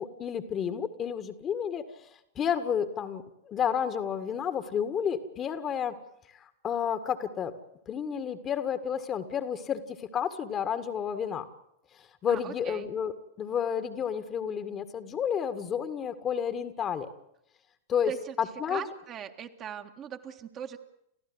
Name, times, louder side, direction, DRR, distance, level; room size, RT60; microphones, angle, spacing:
voice 1, 0.0-1.8 2.4-6.0 6.3-7.5 7.9-11.4 12.2-17.1 17.9-18.1 18.4-18.8, left 8 dB, 30° left, 10 dB, 1.8 m, -31 dB
voice 2, 12.3-12.9 18.1-18.4 18.7-20.8, right 8 dB, 30° right, 5 dB, 1.8 m, -39 dB
29.5 x 14.5 x 8.0 m, 0.78 s
figure-of-eight pair, 90°, 0 cm